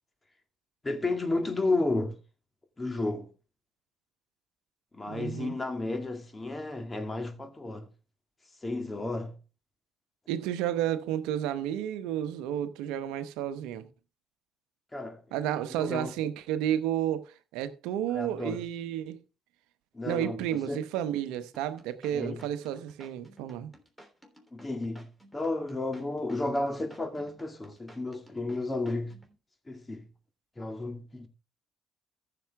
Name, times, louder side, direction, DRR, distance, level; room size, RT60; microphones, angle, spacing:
voice 1, 0.8-2.2 2.8-3.3 4.9-7.9 8.6-9.3 14.9-15.2 15.8-16.1 18.1-18.6 19.9-20.4 20.7-20.8 22.1-22.4 24.5-29.2 29.7-30.1 30.6-31.3, left 2 dB, 25° left, 2.3 m, -32 dB
voice 2, 5.1-5.6 10.3-13.9 15.3-19.2 20.0-23.7, right 11 dB, 75° right, 0.9 m, -31 dB
sound 1, 21.5-29.3, equal, 5° left, 3.3 m, -55 dB
14.5 x 6.9 x 3.5 m
hypercardioid pair, 55°, 0 cm